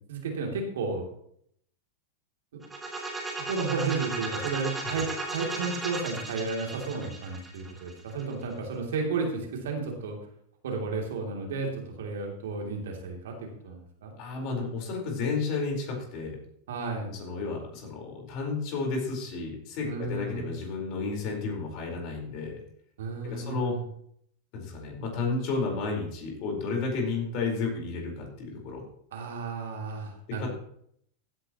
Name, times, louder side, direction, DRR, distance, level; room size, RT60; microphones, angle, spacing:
voice 1, 0.1-1.1 2.5-2.6 3.4-10.2 10.6-14.1 16.7-17.1 19.8-20.5 23.0-23.8 29.1-30.5, right 4 dB, 70° right, 1 dB, 3.0 m, -33 dB
sound 1, 2.6-8.4, right 3 dB, 15° right, 3.0 m, -36 dB
voice 2, 14.2-16.4 17.1-22.6 23.2-23.7 24.5-28.8 30.4-30.5, left 4 dB, 50° left, 0 dB, 4.5 m, -32 dB
15.5 x 9.8 x 3.1 m, 0.68 s
figure-of-eight pair, 95°, 0 cm